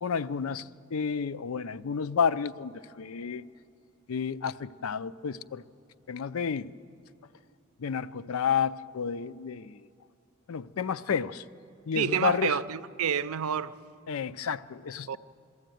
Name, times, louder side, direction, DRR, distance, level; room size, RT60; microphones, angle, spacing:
voice 1, 0.0-3.4 4.1-5.6 6.1-6.7 7.8-9.9 10.5-11.4 11.9-12.6 14.1-15.2, left 6 dB, 85° left, 0.5 m, -31 dB
voice 2, 12.0-13.8 15.1-15.2, right 7 dB, 85° right, 0.5 m, -28 dB
23.5 x 14.0 x 9.2 m
head